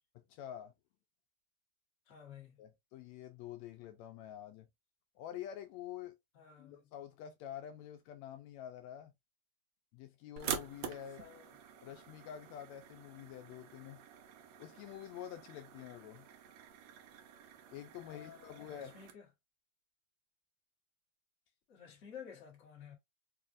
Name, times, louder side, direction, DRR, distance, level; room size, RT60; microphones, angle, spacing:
voice 1, 0.2-0.7 2.6-4.7 5.2-6.1 6.6-9.1 9.9-11.3 11.8-14.0 14.6-16.2 17.7-18.9, left 10 dB, 80° left, 1.7 m, -48 dB
voice 2, 2.1-2.5 6.3-6.8 11.2-11.4 18.0-19.2 21.7-22.9, left 8 dB, 40° left, 1.2 m, -53 dB
sound 1, 10.4-19.1, right 8 dB, 75° right, 2.0 m, -47 dB
4.8 x 2.4 x 2.4 m
omnidirectional pair, 3.3 m